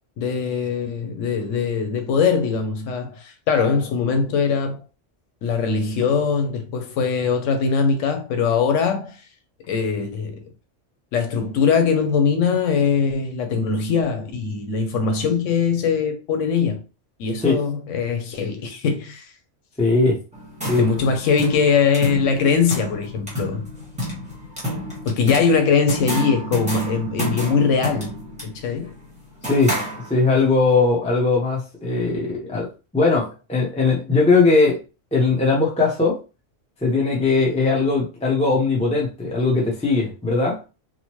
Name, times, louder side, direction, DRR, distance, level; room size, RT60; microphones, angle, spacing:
voice 1, 0.2-4.8 5.4-9.2 9.7-10.4 11.1-16.8 17.2-19.3 20.8-23.7 25.0-28.1 28.4-28.9, left 5 dB, 85° left, 1.0 m, -21 dB
voice 2, 19.8-20.2 20.7-20.9 25.2-25.3 29.4-29.8 30.1-32.7 32.9-34.8 35.1-36.2 36.8-40.6, left 3 dB, 10° left, 0.4 m, -19 dB
sound 1, 20.3-30.5, equal, 5° right, 1.1 m, -30 dB
2.9 x 2.1 x 2.9 m
omnidirectional pair, 1.3 m